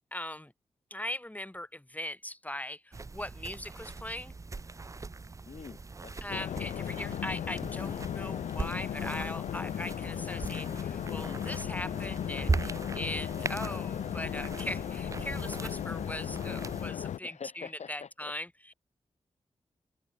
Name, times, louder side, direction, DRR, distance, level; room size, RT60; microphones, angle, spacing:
voice 1, 0.1-0.5 0.9-4.3 6.2-18.7, left 1 dB, 15° left, 1.4 m, -40 dB
sound 1, 2.9-16.9, right 3 dB, 25° right, 0.4 m, -39 dB
voice 2, 5.4-6.5 13.8-14.2 17.2-18.3, left 6 dB, 70° left, 1.7 m, -46 dB
sound 2, 6.3-17.2, left 10 dB, 85° left, 0.5 m, -36 dB
open air
cardioid pair, 45°, 12 cm